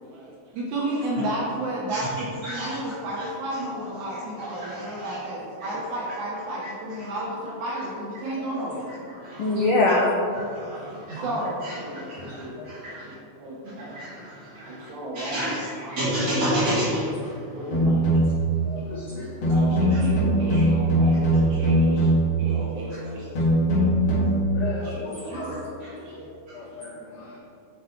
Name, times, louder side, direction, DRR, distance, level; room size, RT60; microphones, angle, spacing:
voice 1, 0.0-8.8 11.2-12.6 12.9-13.0 13.4-13.9 14.6-17.0 17.5-18.2 18.7-22.1 22.4-24.1 24.6-25.6 26.0-26.3 26.6-26.7, right 1 dB, 75° right, -5 dB, 2.4 m, -33 dB
voice 2, 2.4-2.8 4.4-5.2 9.2-9.6 10.5-11.2 11.6-11.7 12.1-13.1 13.8-14.7 15.1-17.0 25.3-25.4 25.8-25.9, equal, 55° right, -12 dB, 3.2 m, -30 dB
voice 3, 9.4-10.1 12.3-12.7 17.8-17.9 18.7-19.3 24.5-25.6 26.5-27.3, left 2 dB, 90° left, -3 dB, 1.2 m, -27 dB
sound 1, 17.7-18.5 19.4-22.4 23.4-24.4, right 1 dB, 60° left, 3.1 m, -20 dB
8.0 x 5.4 x 4.4 m, 2.4 s
omnidirectional pair, 3.5 m